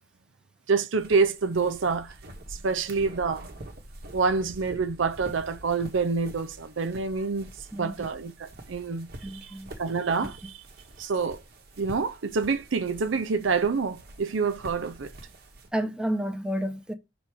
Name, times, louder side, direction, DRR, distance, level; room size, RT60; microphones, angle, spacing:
voice 1, 0.7-2.1 2.6-3.5 4.1-9.5 9.8-10.5 11.0-11.4 11.8-15.1, right 4 dB, 80° right, 0.6 m, -27 dB
sound 1, 1.0-15.7, right 1 dB, 55° right, 1.2 m, -46 dB
voice 2, 7.7-8.1 9.2-9.7 15.7-16.9, equal, 5° right, 0.8 m, -30 dB
6.0 x 4.0 x 4.8 m
head